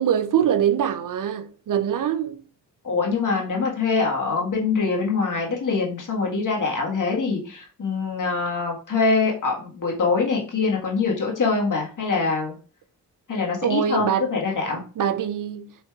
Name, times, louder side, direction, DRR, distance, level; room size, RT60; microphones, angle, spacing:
voice 1, 0.0-2.4 13.6-14.3 14.7-15.8, right 9 dB, 55° right, 0.4 m, -24 dB
voice 2, 2.8-12.5 13.3-14.8, left 4 dB, 50° left, 1.5 m, -24 dB
4.4 x 3.2 x 2.3 m
supercardioid pair, 45°, 39 cm